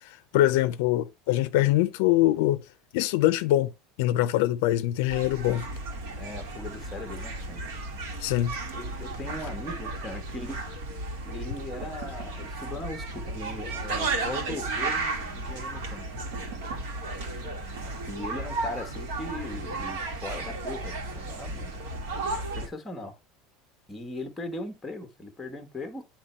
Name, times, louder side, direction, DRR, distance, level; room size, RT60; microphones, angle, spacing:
voice 1, 0.0-2.6 2.9-3.7 4.0-5.7 8.2-8.6, left 14 dB, 75° left, 0.4 m, -23 dB
sound 1, 5.1-22.7, right 2 dB, 85° right, 1.8 m, -34 dB
voice 2, 6.2-7.6 8.7-10.6 11.2-16.1 17.4-17.5 18.1-23.2 23.9-26.0, left 2 dB, 10° left, 1.1 m, -39 dB
8.4 x 3.0 x 4.3 m
supercardioid pair, 150°, 0 cm